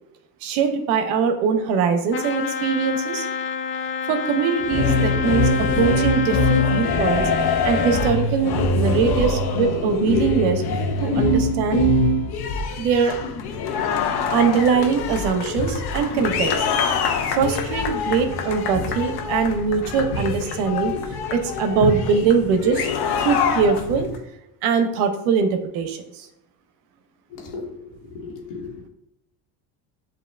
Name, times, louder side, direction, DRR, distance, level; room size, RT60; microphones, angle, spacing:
voice 1, 0.4-3.3 4.1-7.3 7.6-10.6 11.0-11.8 12.8-13.1 14.3-16.7 17.3-20.9 21.3-22.9 23.2-24.1 24.6-26.3, right 6 dB, 80° right, 7 dB, 0.7 m, -22 dB
Trumpet, 2.1-8.2, left 6 dB, 30° left, 0.4 m, -28 dB
sound 1, 4.6-24.2, left 3 dB, 50° left, 0.9 m, -23 dB
voice 2, 27.3-28.9, left 4 dB, 80° left, -2 dB, 1.4 m, -36 dB
7.6 x 2.7 x 2.3 m, 0.85 s
supercardioid pair, 85°, 48 cm